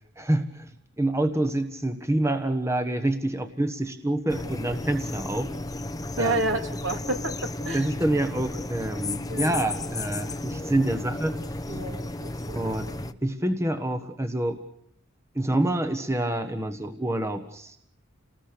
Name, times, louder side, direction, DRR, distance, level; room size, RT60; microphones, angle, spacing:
voice 1, 0.2-0.7 1.0-5.5 6.2-6.4 7.7-11.4 12.5-12.9 13.2-14.6 15.3-17.8, right 1 dB, 15° right, 8 dB, 1.3 m, -27 dB
sound 1, 4.3-13.1, left 2 dB, 15° left, 0.9 m, -34 dB
voice 2, 6.2-8.2 9.3-9.6 11.7-13.0, right 2 dB, 60° right, 4 dB, 3.2 m, -31 dB
30.0 x 20.0 x 6.8 m, 0.72 s
head